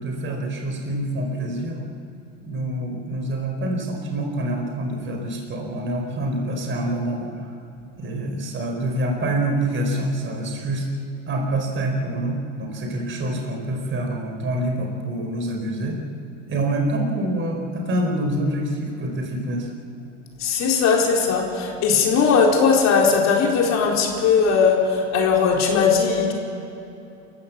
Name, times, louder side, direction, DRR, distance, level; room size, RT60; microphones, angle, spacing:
voice 1, 0.0-1.9 2.4-7.5 8.0-10.9 11.3-16.0 16.5-19.7, right 1 dB, 30° right, 2 dB, 4.4 m, -26 dB
voice 2, 20.4-26.3, left 5 dB, 45° left, 0 dB, 4.4 m, -19 dB
28.0 x 15.5 x 7.2 m, 2.8 s
hypercardioid pair, 85°, 38 cm